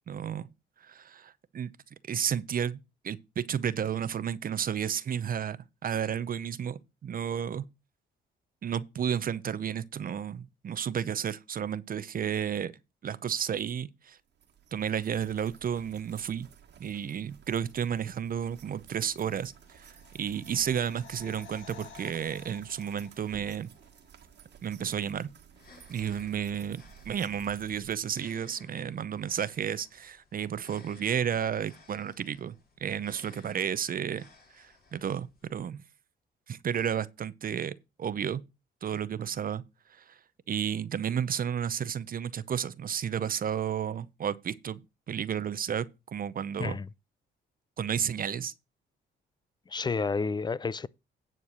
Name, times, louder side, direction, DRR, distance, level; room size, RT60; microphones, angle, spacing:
voice 1, 0.1-0.5 0.8-1.7 2.1-2.8 3.0-7.6 8.6-12.7 13.0-14.2 14.7-16.5 16.8-23.7 24.6-25.3 25.9-32.5 32.8-34.3 34.5-35.8 36.5-38.4 38.8-39.6 39.9-40.2 40.5-44.8 45.1-46.8 47.8-48.5, right 8 dB, 45° right, 0.7 m, -32 dB
sound 1, 14.3-28.0, right 8 dB, 65° right, 1.6 m, -54 dB
sound 2, 19.4-24.1 24.4-24.5, left 9 dB, 80° left, 1.6 m, -53 dB
sound 3, 25.5-35.5, left 4 dB, 50° left, 3.5 m, -58 dB
voice 2, 49.7-50.9, left 4 dB, 20° left, 0.4 m, -30 dB
10.0 x 4.7 x 6.1 m
cardioid pair, 90°, 20 cm